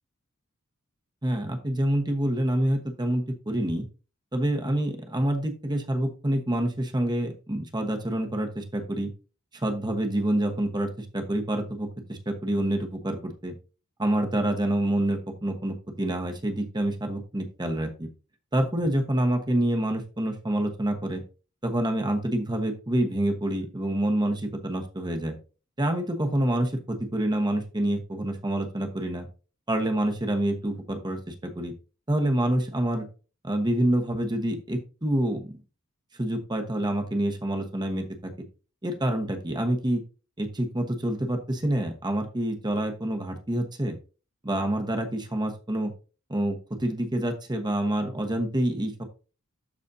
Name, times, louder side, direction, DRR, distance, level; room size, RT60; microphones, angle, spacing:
voice 1, 1.2-3.8 4.3-9.1 9.5-13.5 14.0-18.1 18.5-21.2 21.6-25.4 25.8-29.3 29.7-31.7 32.1-33.1 33.4-35.5 36.2-38.3 38.8-40.0 40.4-44.0 44.4-45.9 46.3-49.0, right 1 dB, 20° right, 4 dB, 1.1 m, -27 dB
12.5 x 4.2 x 2.7 m, 0.34 s
head